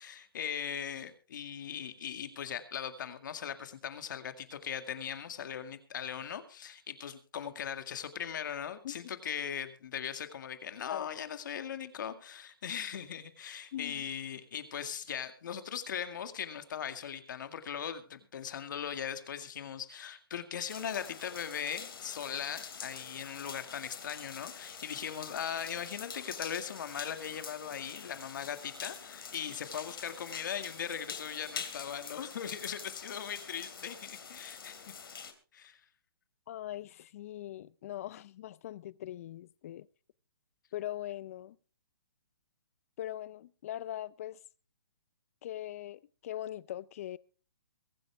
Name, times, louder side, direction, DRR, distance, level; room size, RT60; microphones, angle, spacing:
voice 1, 0.0-34.9 35.5-35.8, left 8 dB, 55° left, 2.1 m, -39 dB
voice 2, 13.7-14.0 36.5-39.9 40.7-41.6 43.0-44.4 45.4-47.2, left 13 dB, 40° left, 0.6 m, -41 dB
sound 1, 20.7-35.3, left 6 dB, 75° left, 2.8 m, -46 dB
23.0 x 10.0 x 3.4 m
hypercardioid pair, 155°, 12 cm